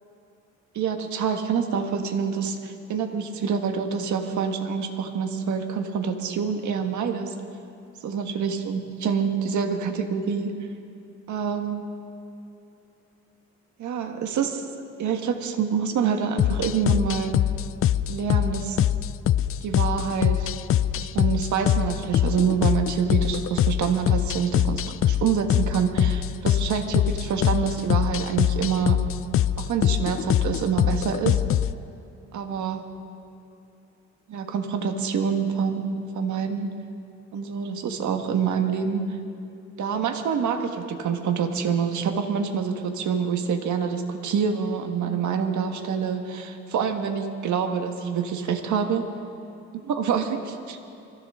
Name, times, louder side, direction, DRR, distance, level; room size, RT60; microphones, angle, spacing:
voice 1, 0.7-7.3 8.0-10.5 11.3-11.9 13.8-17.3 18.1-18.8 19.6-20.5 20.9-29.0 29.6-31.4 32.3-32.8 34.3-36.7 37.3-39.2 39.8-49.1 49.9-50.8, right 6 dB, 70° right, 5 dB, 1.6 m, -26 dB
sound 1, 16.4-31.7, left 11 dB, 45° left, 0.4 m, -23 dB
24.5 x 15.5 x 3.7 m, 2.8 s
cardioid pair, 90°, 30 cm